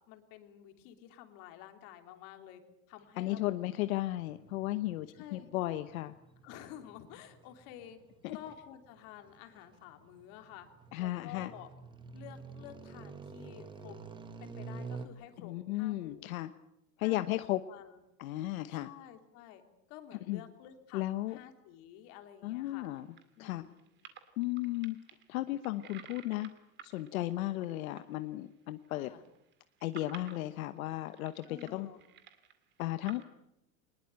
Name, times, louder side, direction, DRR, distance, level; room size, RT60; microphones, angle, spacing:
voice 1, 0.1-2.6 2.9-3.5 5.1-5.5 6.4-8.0 8.3-10.7 11.0-11.7 12.1-14.0 14.4-16.3 17.0-17.4 17.7-18.0 18.7-19.6 19.9-22.9 23.4-23.8 28.9-29.2 31.4-32.0, left 11 dB, 45° left, 6 dB, 3.2 m, -51 dB
voice 2, 3.2-6.1 8.2-8.4 10.9-11.5 15.4-16.5 17.0-17.6 18.2-18.9 20.3-20.4 20.9-21.4 22.4-23.1 23.4-23.6 24.4-25.0 25.3-26.5 26.8-29.1 29.8-31.9 32.8-33.2, left 16 dB, 80° left, 11 dB, 1.2 m, -35 dB
sound 1, 4.2-15.1, right 4 dB, 10° right, 1.2 m, -49 dB
sound 2, 22.8-28.1 28.4-28.5 28.8-33.2, right 8 dB, 25° right, 2.2 m, -54 dB
22.5 x 20.5 x 8.9 m, 0.85 s
supercardioid pair, 165°, 41 cm